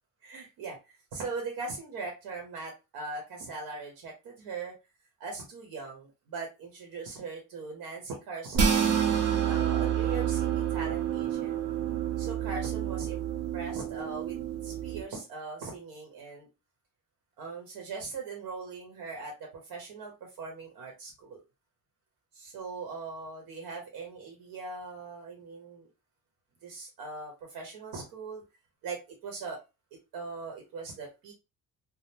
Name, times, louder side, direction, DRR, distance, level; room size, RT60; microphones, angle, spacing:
voice 1, 0.2-4.7 5.2-8.9 9.5-11.6 12.2-13.2 13.5-16.5 17.4-21.4 22.3-25.9 26.6-28.4 28.8-29.6 30.1-31.3, right 4 dB, 85° right, 1 dB, 1.0 m, -40 dB
sound 1, 8.5-15.0, right 9 dB, 45° right, 0.5 m, -28 dB
3.5 x 2.1 x 2.8 m, 0.27 s
cardioid pair, 160°, 36 cm